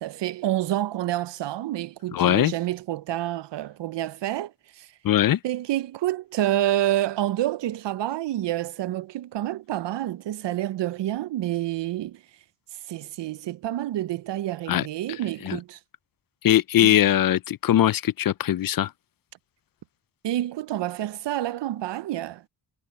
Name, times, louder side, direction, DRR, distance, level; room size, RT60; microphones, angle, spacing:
voice 1, 0.0-4.9 5.4-12.2 12.9-15.8 20.2-22.5, right 13 dB, 70° right, 0.6 m, -28 dB
voice 2, 2.1-2.5 5.0-5.4 14.7-14.9 15.4-15.6 16.4-18.9, left 12 dB, 55° left, 0.5 m, -21 dB
wide cardioid pair, 115°, 43 cm